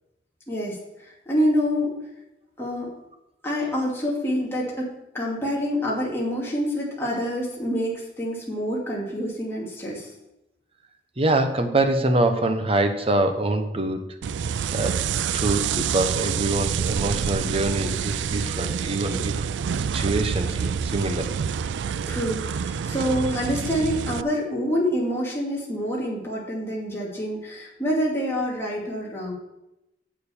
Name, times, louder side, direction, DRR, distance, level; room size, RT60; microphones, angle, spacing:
voice 1, 0.5-1.9 2.6-2.9 3.4-10.1 22.1-29.3, equal, 15° left, -4 dB, 2.4 m, -27 dB
voice 2, 11.2-14.0 14.7-15.1 15.3-19.5 19.9-21.3, right 2 dB, 35° right, 6 dB, 1.1 m, -24 dB
sound 1, 14.2-24.2, right 7 dB, 90° right, 0.3 m, -27 dB
7.7 x 6.8 x 6.9 m, 0.89 s
head